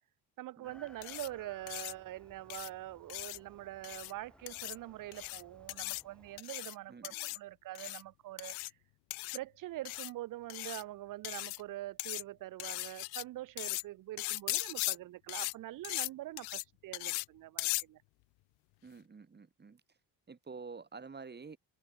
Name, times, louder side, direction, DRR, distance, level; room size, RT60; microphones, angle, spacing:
voice 1, 0.4-8.7 9.3-18.0, right 16 dB, 45° right, 0.4 m, -44 dB
Chicken rooster, 0.6-6.4, left 1 dB, ahead, 0.6 m, -61 dB
sound 1, 1.0-1.3 1.7-1.9 2.5-2.7 3.1-3.4 3.8-4.1 4.5-4.8 5.1-5.4 5.7-6.0 6.4-6.7 7.0-7.4 7.7-8.0 8.4-8.7 9.1-9.4 9.9-10.1 10.5-10.8 11.2-11.6 12.0-12.2 12.6-13.2 13.6-13.8 14.2-15.0 15.3-15.5 15.8-16.1 16.4-16.6 16.9-17.3 17.6-17.8, left 26 dB, 90° left, 0.5 m, -38 dB
voice 2, 6.9-7.3 18.8-19.8 20.3-21.6, right 5 dB, 20° right, 2.0 m, -49 dB
cardioid pair, 125°, 46 cm